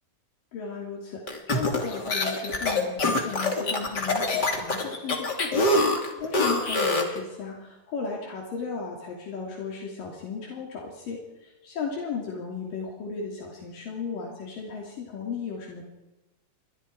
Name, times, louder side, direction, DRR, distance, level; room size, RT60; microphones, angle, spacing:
voice 1, 0.5-5.8 6.2-15.9, left 5 dB, 75° left, -1 dB, 4.6 m, -35 dB
sound 1, 1.3-7.2, left 2 dB, 30° left, 3.0 m, -25 dB
28.5 x 23.0 x 4.7 m, 1.0 s
omnidirectional pair, 3.9 m